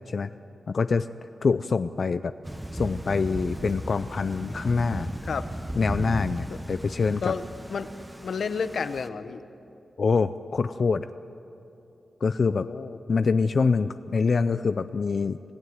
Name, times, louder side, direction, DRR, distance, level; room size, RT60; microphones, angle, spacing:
voice 1, 0.7-1.1 1.4-2.3 2.7-5.1 5.8-7.3 10.0-11.1 12.2-12.7 13.1-15.4, left 4 dB, 55° left, 11 dB, 0.5 m, -25 dB
Thunder / Rain, 2.4-9.1, right 1 dB, 10° right, 1.1 m, -36 dB
voice 2, 8.2-9.4 12.5-13.0, left 5 dB, 70° left, 11 dB, 1.0 m, -31 dB
26.5 x 16.0 x 9.6 m, 2.8 s
wide cardioid pair, 130°, 0 cm